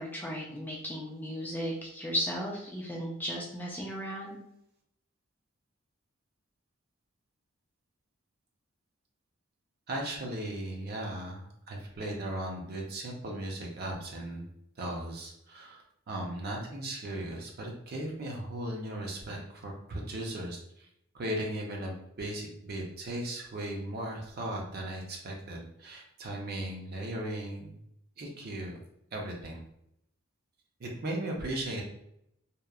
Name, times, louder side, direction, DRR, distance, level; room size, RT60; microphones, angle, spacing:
voice 1, 0.0-4.4, equal, 10° left, -2 dB, 0.3 m, -35 dB
voice 2, 9.9-14.5 14.8-20.9 21.1-27.8 28.2-28.8 29.1-29.6 30.8-31.8, right 1 dB, 50° right, 0 dB, 0.5 m, -37 dB
2.8 x 2.0 x 2.3 m, 0.75 s
head